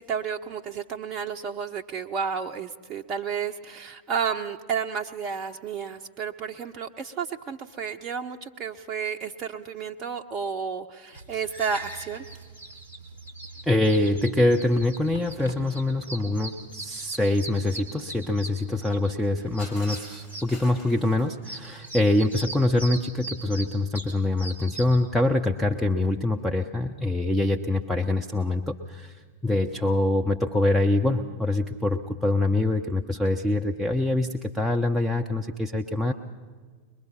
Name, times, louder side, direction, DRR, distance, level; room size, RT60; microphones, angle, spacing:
voice 1, 0.0-12.2, right 6 dB, 30° right, 2 dB, 0.7 m, -31 dB
sound 1, 11.1-25.0, right 2 dB, 85° left, 2.9 m, -40 dB
voice 2, 13.7-29.2 29.4-36.1, left 2 dB, 5° left, 2 dB, 0.8 m, -24 dB
Shatter, 19.6-22.4, left 2 dB, 50° left, 3.8 m, -47 dB
22.0 x 22.0 x 5.7 m, 1.5 s
figure-of-eight pair, 90°, 0 cm